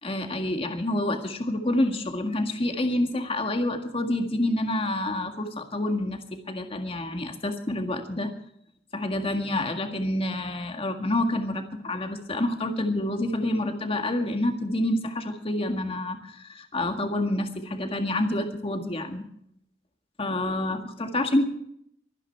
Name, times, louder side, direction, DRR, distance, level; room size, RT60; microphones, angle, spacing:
voice 1, 0.0-8.3 8.9-19.3 20.2-21.5, left 1 dB, 30° left, 5 dB, 1.9 m, -28 dB
24.0 x 9.9 x 4.6 m, 0.70 s
head